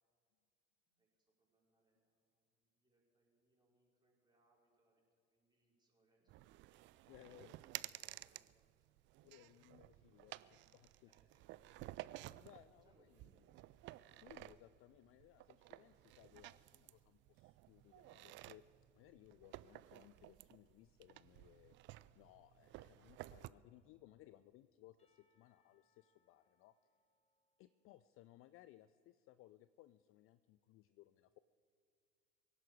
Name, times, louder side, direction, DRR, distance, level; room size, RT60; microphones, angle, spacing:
voice 1, 0.9-5.0 5.3-6.6 6.9-9.0 9.5-10.8 11.0-12.0 12.8-13.8, right 2 dB, 10° right, -3 dB, 4.9 m, -79 dB
sound 1, 6.3-23.5, right 17 dB, 35° right, 0.4 m, -54 dB
voice 2, 7.1-7.5 9.2-11.1 12.4-13.2 14.1-18.6 18.9-21.8 22.2-26.8 27.6-31.4, left 15 dB, 35° left, 15 dB, 0.4 m, -63 dB
Percussion / Church bell, 25.0-28.6, left 3 dB, 15° left, 2.0 m, -83 dB
24.5 x 11.0 x 4.8 m, 2.4 s
figure-of-eight pair, 65°, 37 cm